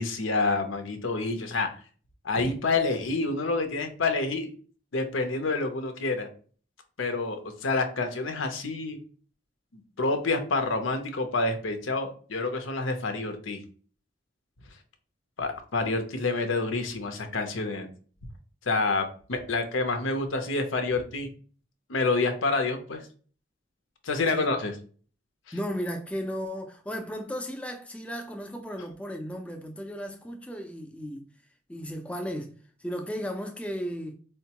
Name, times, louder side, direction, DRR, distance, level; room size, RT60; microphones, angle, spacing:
voice 1, 0.0-1.7 2.2-4.5 4.9-6.3 7.0-9.0 10.0-13.6 15.4-17.9 18.7-21.3 21.9-23.0 24.0-24.7, left 3 dB, 90° left, 0.7 m, -28 dB
voice 2, 25.5-31.3 31.7-32.5 32.8-34.1, equal, 5° left, 0.4 m, -35 dB
4.4 x 2.2 x 2.8 m
head